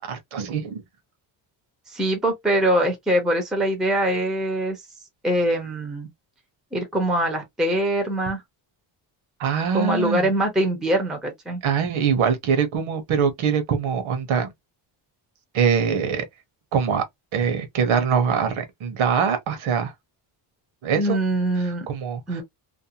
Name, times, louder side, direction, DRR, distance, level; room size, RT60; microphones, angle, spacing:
voice 1, 0.1-0.8 9.4-10.3 11.6-14.5 15.5-16.2 16.7-17.0 17.3-19.9 20.8-21.2 21.6-22.4, right 7 dB, 70° right, 0.9 m, -23 dB
voice 2, 1.9-4.8 5.2-6.1 6.7-8.4 9.7-11.6 21.0-21.9 22.3-22.4, right 1 dB, ahead, 0.5 m, -23 dB
2.6 x 2.0 x 2.6 m
cardioid pair, 170°, 50 cm